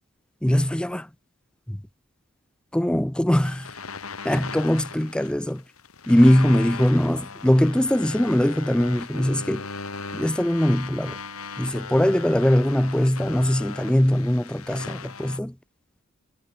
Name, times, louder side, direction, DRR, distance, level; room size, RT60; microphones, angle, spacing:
voice 1, 0.4-1.1 1.7-1.8 2.7-3.7 4.2-5.6 6.1-9.7 10.1-11.2 11.6-15.5, equal, 5° left, 0.4 m, -21 dB
sound 1, 3.4-15.4, left 5 dB, 85° left, 3.0 m, -38 dB
head